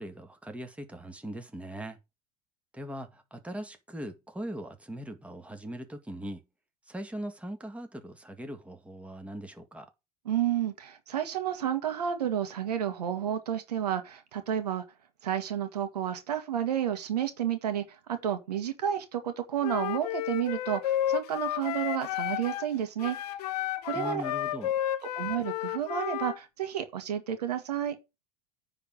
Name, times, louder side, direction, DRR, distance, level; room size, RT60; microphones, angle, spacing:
voice 1, 0.0-2.0 2.7-6.4 6.9-9.9 23.9-24.7, equal, 5° right, 1.9 m, -40 dB
voice 2, 10.2-14.8 15.2-23.2 23.6-24.2 25.1-28.0, right 10 dB, 85° right, 1.6 m, -31 dB
Wind instrument woodwind instrument, 19.6-22.7 23.0-26.4, left 12 dB, 75° left, 0.9 m, -32 dB
9.8 x 3.9 x 6.3 m
hypercardioid pair, 85°, 20 cm